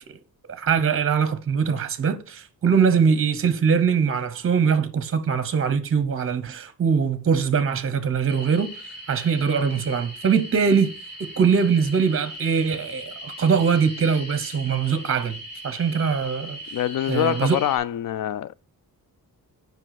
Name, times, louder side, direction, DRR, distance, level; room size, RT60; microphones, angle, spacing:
voice 1, 0.5-8.7 9.1-15.4 15.6-16.6 17.1-17.6, right 6 dB, 35° right, 0.7 m, -22 dB
sound 1, 8.3-17.8, equal, 30° left, 2.9 m, -39 dB
voice 2, 16.7-18.5, left 11 dB, 65° left, 0.5 m, -25 dB
7.6 x 5.4 x 5.8 m
wide cardioid pair, 170°, 36 cm